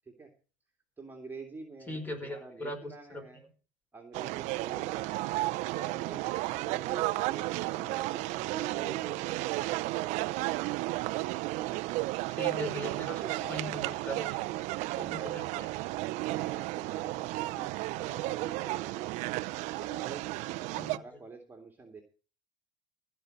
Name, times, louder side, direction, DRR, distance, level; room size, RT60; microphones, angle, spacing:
voice 1, 1.0-3.4 3.9-5.4 5.7-10.7 11.5-11.8 13.0-13.6 14.5-15.3 16.2-19.2 19.7-22.0, right 4 dB, 15° right, 2 dB, 2.6 m, -47 dB
voice 2, 1.9-2.8 3.1-3.2 12.3-14.4 15.0-15.7 20.8-21.0, left 1 dB, 15° left, 5 dB, 5.0 m, -39 dB
sound 1, 4.1-21.0, right 19 dB, 65° right, 0.6 m, -33 dB
15.5 x 5.5 x 7.8 m, 0.36 s
supercardioid pair, 110°, 13 cm